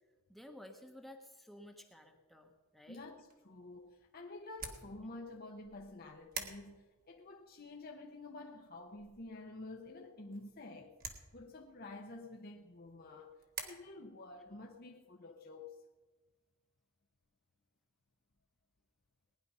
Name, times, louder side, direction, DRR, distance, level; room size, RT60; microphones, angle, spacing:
voice 1, 0.3-3.0, left 1 dB, ahead, 1.0 m, -54 dB
voice 2, 2.9-10.9 11.3-13.3 13.6-15.8, left 2 dB, 45° left, 0.9 m, -50 dB
sound 1, 3.1-13.6, right 5 dB, 40° right, 1.7 m, -51 dB
19.5 x 10.0 x 5.6 m
head